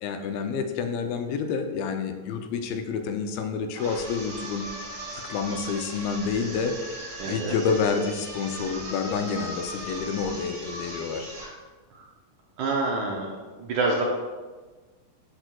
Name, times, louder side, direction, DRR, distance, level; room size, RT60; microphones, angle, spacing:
voice 1, 0.0-4.7 5.3-6.8 7.3-11.3, left 5 dB, 90° left, 6 dB, 2.4 m, -28 dB
sound 1, 3.7-11.6, right 1 dB, 50° right, 2.8 m, -38 dB
voice 2, 7.2-7.6 11.9-12.1 12.6-13.3 13.6-14.0, right 3 dB, 75° right, -2 dB, 1.8 m, -27 dB
12.0 x 4.4 x 2.3 m, 1.3 s
omnidirectional pair, 4.1 m